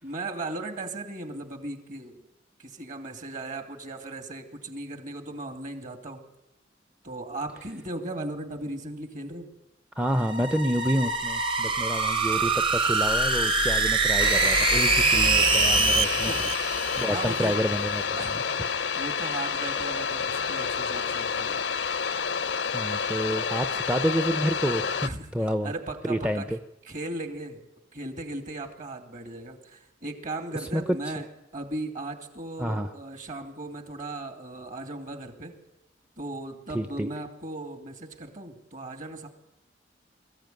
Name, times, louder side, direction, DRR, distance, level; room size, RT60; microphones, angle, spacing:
voice 1, 0.0-2.2 2.6-6.2 7.0-9.5 16.1-16.4 17.1-17.6 18.2-18.4 18.9-21.7 25.0-25.3 25.6-26.5 26.8-27.6 27.9-31.3 31.5-35.6 36.2-39.3, right 2 dB, 45° right, 6 dB, 2.6 m, -37 dB
voice 2, 10.0-16.4 17.0-18.4 22.7-25.7 26.0-26.6 30.7-30.8 32.6-32.9 36.7-37.1, equal, 5° right, 8 dB, 0.7 m, -29 dB
sound 1, 10.1-17.5, right 3 dB, 30° right, 1.3 m, -24 dB
sound 2, 14.2-25.1, left 6 dB, 70° left, 0.7 m, -29 dB
22.5 x 14.5 x 9.3 m, 0.86 s
head